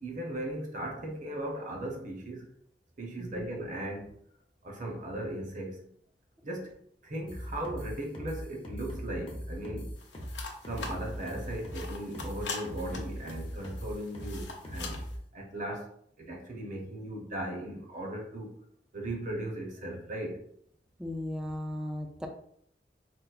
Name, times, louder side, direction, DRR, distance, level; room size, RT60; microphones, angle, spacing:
voice 1, 0.0-2.5 3.0-4.1 4.6-5.8 6.4-6.7 7.0-10.0 10.6-15.0 15.3-15.9 16.2-18.5 18.9-20.4, right 1 dB, 50° right, 0.7 m, -37 dB
sound 1, 7.3-15.2, equal, 30° left, 0.7 m, -40 dB
sound 2, 10.0-15.2, left 4 dB, 90° left, 0.6 m, -44 dB
voice 2, 21.0-22.3, left 1 dB, 5° right, 0.3 m, -36 dB
4.3 x 2.0 x 2.4 m
head